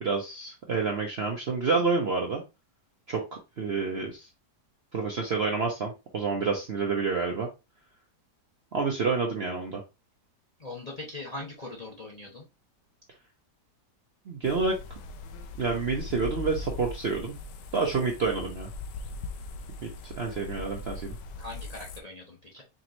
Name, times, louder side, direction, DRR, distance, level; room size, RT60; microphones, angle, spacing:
voice 1, 0.0-2.4 3.1-4.3 4.9-7.5 8.7-9.8 14.3-14.8 15.6-17.4 17.7-18.7 19.8-21.2, right 4 dB, 55° right, 1 dB, 0.7 m, -28 dB
voice 2, 10.6-12.4 21.4-22.6, left 2 dB, 30° left, -2 dB, 0.7 m, -41 dB
sound 1, 14.4-22.0, left 3 dB, 85° left, 1.2 m, -40 dB
5.2 x 3.0 x 2.5 m, 0.26 s
omnidirectional pair, 1.8 m